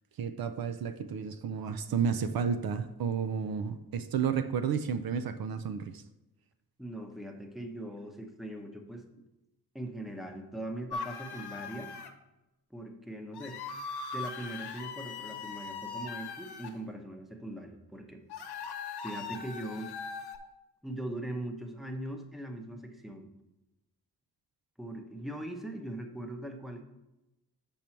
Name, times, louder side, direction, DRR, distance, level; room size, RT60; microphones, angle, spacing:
voice 1, 0.2-6.0, right 6 dB, 65° right, 9 dB, 0.6 m, -32 dB
voice 2, 6.8-9.1 9.7-11.9 12.7-13.6 14.1-18.2 19.0-19.9 20.8-23.3 24.8-26.8, right 1 dB, ahead, 4 dB, 0.9 m, -40 dB
sound 1, 10.9-12.1 13.3-16.7 18.3-20.4, left 5 dB, 90° left, 0.9 m, -40 dB
7.3 x 5.3 x 4.4 m, 0.96 s
wide cardioid pair, 115°, 38 cm